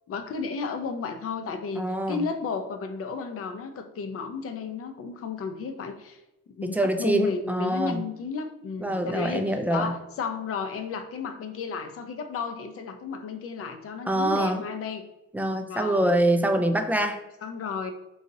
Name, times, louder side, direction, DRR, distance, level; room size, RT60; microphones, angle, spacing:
voice 1, 0.1-6.2 6.5-15.0 15.7-16.1 17.4-17.9, left 5 dB, 50° left, 7 dB, 0.5 m, -33 dB
voice 2, 1.8-2.2 6.6-8.0 8.8-9.9 14.1-14.6 15.3-17.2, right 1 dB, 5° right, 6 dB, 0.3 m, -25 dB
3.9 x 2.8 x 2.6 m, 0.93 s
cardioid pair, 90°, 30 cm